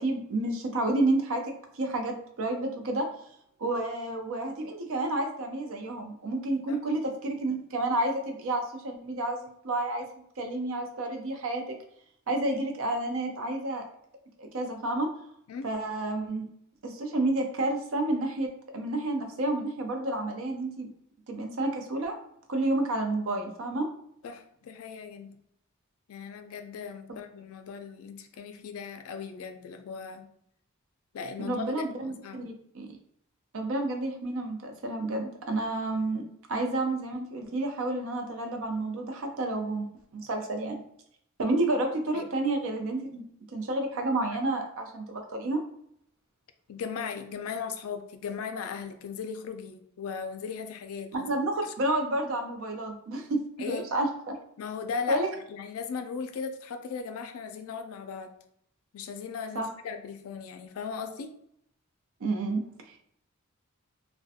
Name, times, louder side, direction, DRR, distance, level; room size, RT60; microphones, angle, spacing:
voice 1, 0.0-1.4 1.7-3.1 3.6-11.6 12.3-13.8 14.4-15.1 15.6-16.4 16.8-20.9 21.3-22.2 22.5-23.9 31.4-32.9 33.5-36.2 36.5-39.9 40.1-40.8 41.4-43.2 43.5-45.6 51.1-54.3 55.1-55.3 59.5-59.7 62.2-62.6, right 2 dB, 65° right, 3 dB, 0.5 m, -30 dB
voice 2, 24.2-25.4 26.1-30.3 31.1-32.4 42.1-42.2 46.7-51.3 53.6-53.9 54.6-55.2 55.5-58.3 58.9-61.3, left 5 dB, 70° left, 8 dB, 0.3 m, -37 dB
2.4 x 2.1 x 2.6 m, 0.71 s
head